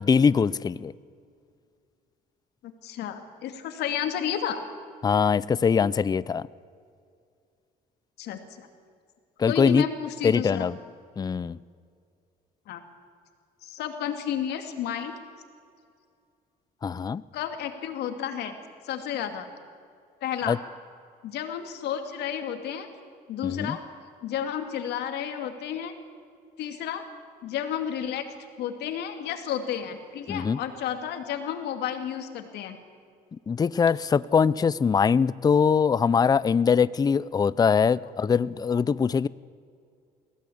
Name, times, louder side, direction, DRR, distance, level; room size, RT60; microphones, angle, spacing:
voice 1, 0.1-0.9 5.0-6.4 9.4-9.8 10.2-10.8 11.2-11.6 16.8-17.2 20.5-20.6 23.4-23.8 30.3-30.6 33.5-39.3, left 6 dB, 25° left, 19 dB, 0.5 m, -22 dB
voice 2, 2.6-4.6 8.2-8.7 9.4-10.7 12.7-12.8 13.6-15.1 17.3-18.6 18.8-19.5 20.2-20.6 21.2-22.9 23.3-23.8 24.2-25.9 26.6-27.0 27.4-28.3 28.6-32.8, left 9 dB, 75° left, 7 dB, 2.5 m, -31 dB
22.0 x 17.0 x 8.6 m, 2.3 s
cardioid pair, 110°, 17 cm